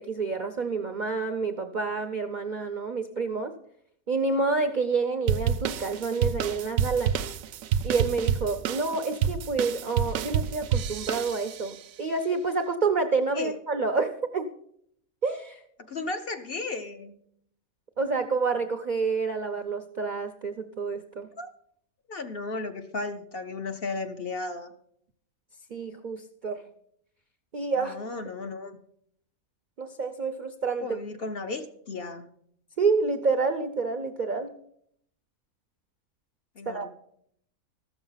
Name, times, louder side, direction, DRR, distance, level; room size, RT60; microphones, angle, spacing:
voice 1, 0.0-3.5 4.1-7.2 7.8-14.5 15.2-15.6 18.0-21.3 25.7-26.6 27.5-28.0 29.8-31.0 32.8-34.5 36.7-36.9, right 4 dB, 55° right, 7 dB, 0.5 m, -28 dB
sound 1, 5.3-11.8, right 8 dB, 75° right, 1.0 m, -28 dB
voice 2, 15.8-17.2 21.4-21.5 22.1-24.7 27.8-28.8 30.8-32.3 36.6-36.9, left 3 dB, 50° left, 6 dB, 0.8 m, -34 dB
13.5 x 7.0 x 5.6 m, 0.69 s
omnidirectional pair, 1.5 m